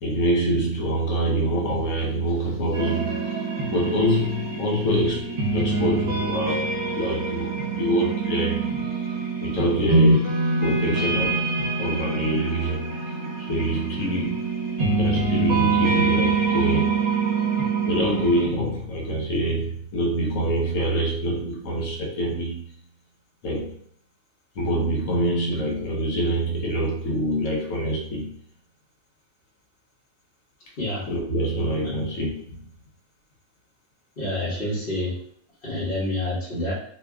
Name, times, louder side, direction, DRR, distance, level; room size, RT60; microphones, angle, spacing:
voice 1, 0.0-3.4 3.7-6.7 6.9-8.6 9.4-10.3 10.6-12.9 13.4-14.5 15.0-16.9 17.9-22.7 23.4-23.8 24.5-28.4 31.1-32.7, equal, 70° left, -1 dB, 1.2 m, -25 dB
sound 1, 2.7-18.5, right 3 dB, 50° right, 1.0 m, -25 dB
voice 2, 30.8-31.1 31.8-32.0 34.2-35.2 35.6-36.7, left 1 dB, 45° left, -11 dB, 1.2 m, -28 dB
3.1 x 2.3 x 3.5 m, 0.64 s
omnidirectional pair, 1.5 m